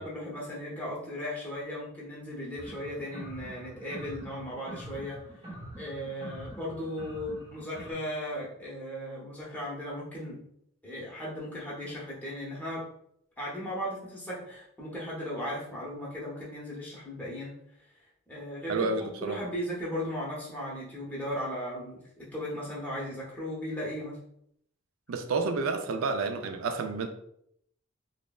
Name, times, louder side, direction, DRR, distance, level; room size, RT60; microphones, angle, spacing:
voice 1, 0.0-5.2 5.8-10.4 10.8-12.9 13.4-17.5 18.3-22.0 22.3-24.2, equal, 10° left, -6 dB, 0.7 m, -36 dB
sound 1, 2.6-7.9, right 1 dB, 30° right, 0.7 m, -45 dB
voice 2, 18.7-19.4 25.1-27.1, right 4 dB, 75° right, 7 dB, 0.3 m, -30 dB
3.1 x 2.0 x 2.2 m, 0.72 s
head